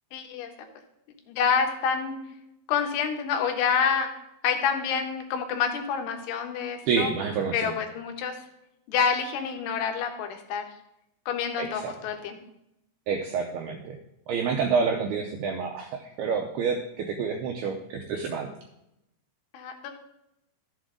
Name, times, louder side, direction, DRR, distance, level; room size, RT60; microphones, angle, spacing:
voice 1, 0.1-0.5 1.3-2.2 2.7-4.1 4.4-7.1 7.5-8.4 8.9-10.6 11.3-12.4 19.5-19.9, left 6 dB, 85° left, 4 dB, 3.5 m, -27 dB
voice 2, 6.9-7.8 11.6-11.9 13.1-14.0 14.3-18.5, right 5 dB, 85° right, 2 dB, 2.2 m, -28 dB
12.5 x 7.6 x 3.7 m, 0.85 s
omnidirectional pair, 5.4 m